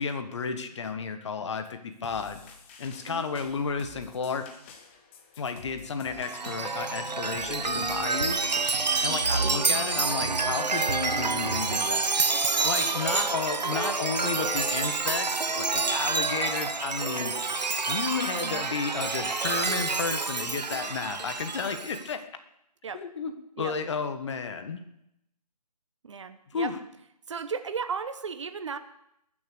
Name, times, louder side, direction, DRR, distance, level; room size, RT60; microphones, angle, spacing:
voice 1, 0.0-2.4 2.8-4.4 5.4-8.6 9.0-12.3 12.6-17.3 17.9-22.2 22.9-24.8 26.5-26.8, left 5 dB, 45° left, 8 dB, 1.5 m, -32 dB
sound 1, 2.0-9.1, left 5 dB, 20° left, 1.0 m, -50 dB
Chime, 6.2-22.0, right 4 dB, 90° right, 1.0 m, -28 dB
voice 2, 13.8-14.5 18.4-18.7 22.8-23.1 23.6-23.8 26.0-26.7 27.3-28.8, right 6 dB, 45° right, 11 dB, 1.1 m, -36 dB
20.5 x 7.4 x 6.9 m, 0.80 s
figure-of-eight pair, 155°, 21 cm